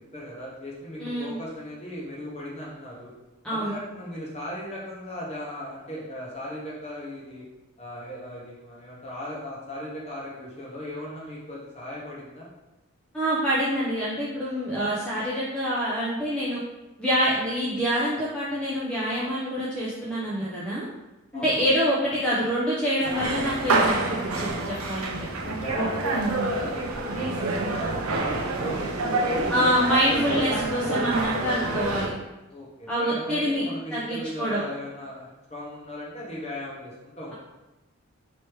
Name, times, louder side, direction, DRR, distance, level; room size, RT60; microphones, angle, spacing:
voice 1, 0.1-3.1 3.5-7.4 7.8-12.5 21.3-21.7 25.4-30.6 32.5-37.3, equal, 30° left, -5 dB, 1.1 m, -37 dB
voice 2, 1.0-1.4 3.4-3.7 13.1-16.6 17.0-20.9 21.3-25.2 25.7-25.9 29.5-32.1 32.9-33.7 33.9-34.6, equal, 5° left, -9 dB, 0.6 m, -26 dB
sound 1, 23.0-32.1, right 2 dB, 80° right, 0.6 m, -27 dB
3.2 x 3.0 x 4.6 m, 1.0 s
head